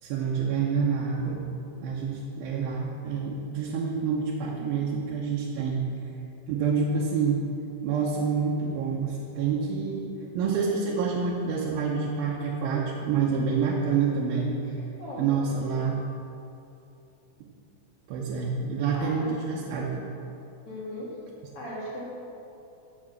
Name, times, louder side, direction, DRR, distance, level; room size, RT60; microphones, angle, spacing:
voice 1, 0.0-1.4 1.8-5.8 6.5-7.5 7.8-10.0 10.3-14.6 15.2-16.0 18.1-20.1, right 5 dB, 85° right, -3 dB, 2.7 m, -27 dB
voice 2, 14.8-15.3 18.9-19.3 20.7-21.2 21.5-22.0, equal, 50° left, -5 dB, 2.0 m, -38 dB
8.8 x 6.8 x 7.2 m, 2.8 s
omnidirectional pair, 4.2 m